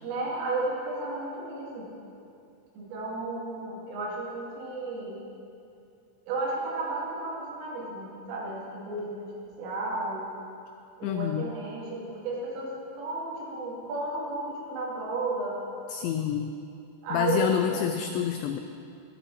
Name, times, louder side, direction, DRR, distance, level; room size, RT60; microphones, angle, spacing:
voice 1, 0.0-1.9 2.8-5.2 6.3-9.3 9.6-10.3 11.0-15.6 17.0-17.8, right 2 dB, 80° right, -4 dB, 5.3 m, -33 dB
voice 2, 11.0-11.5 15.9-16.5 17.1-18.6, left 9 dB, 90° left, 7 dB, 2.5 m, -28 dB
22.5 x 10.5 x 4.2 m, 2.6 s
omnidirectional pair, 5.8 m